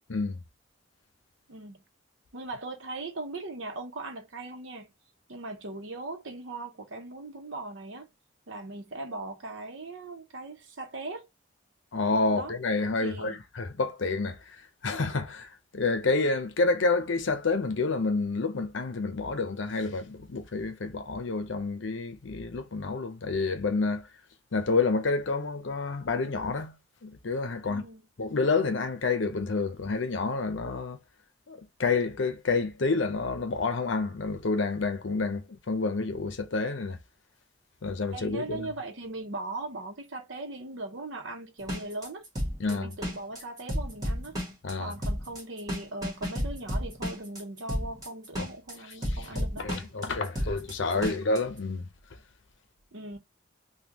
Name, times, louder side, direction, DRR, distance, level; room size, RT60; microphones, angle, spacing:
voice 1, 1.5-1.8 2.3-4.9 5.3-8.1 8.5-11.3 12.3-12.5 13.0-13.4 27.6-28.0 38.1-42.2 42.7-44.4 44.8-49.7 50.9-51.2 52.9-53.2, right 2 dB, 75° right, 0.8 m, -39 dB
voice 2, 11.9-14.6 14.8-24.1 24.5-27.9 28.2-31.0 31.5-37.0 37.8-38.7 42.6-42.9 44.6-44.9 48.4-48.5 49.3-51.9, left 3 dB, 75° left, 0.7 m, -29 dB
sound 1, 41.6-51.4, equal, 20° right, 1.4 m, -33 dB
3.6 x 2.2 x 2.9 m
head